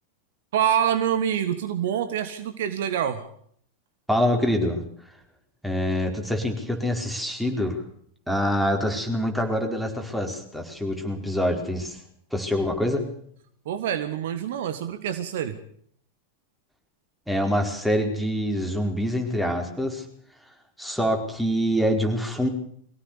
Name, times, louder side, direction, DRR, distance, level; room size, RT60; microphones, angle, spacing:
voice 1, 0.5-3.3 13.6-15.6, right 9 dB, 55° right, 11 dB, 1.7 m, -26 dB
voice 2, 4.1-4.8 5.6-7.8 8.3-12.0 12.3-13.1 17.3-20.0 20.8-22.5, equal, ahead, 2 dB, 4.8 m, -25 dB
23.5 x 17.0 x 7.0 m, 0.64 s
figure-of-eight pair, 90°, 0 cm